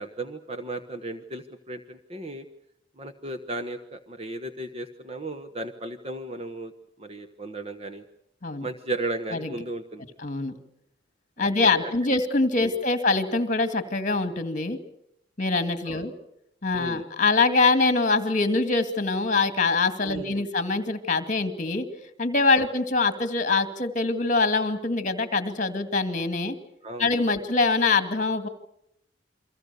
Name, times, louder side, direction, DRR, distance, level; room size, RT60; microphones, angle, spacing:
voice 1, 0.0-2.5 3.0-6.7 7.0-8.0 8.6-10.1 11.4-11.5 11.8-12.1 15.8-16.1 16.7-17.0 20.0-20.5 22.6-22.7 26.8-27.4, right 2 dB, 30° right, 8 dB, 1.2 m, -35 dB
voice 2, 10.2-10.5 11.4-14.8 15.4-16.1 16.6-21.9 22.2-26.6 27.0-28.5, left 3 dB, 40° left, 10 dB, 2.1 m, -24 dB
29.0 x 23.5 x 6.9 m, 0.76 s
head